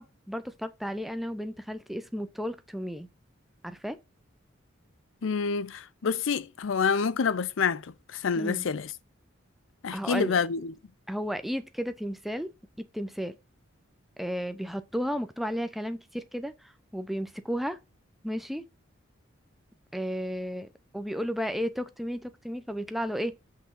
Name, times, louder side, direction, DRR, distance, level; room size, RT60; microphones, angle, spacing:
voice 1, 0.0-3.1 3.6-4.0 8.4-8.7 9.9-10.4 11.1-13.4 14.2-16.5 16.9-17.8 18.2-18.7 19.9-20.7 20.9-23.3, equal, ahead, 0.6 m, -33 dB
voice 2, 5.2-8.9 9.8-10.7, left 5 dB, 75° left, 0.5 m, -28 dB
8.0 x 3.6 x 5.3 m
head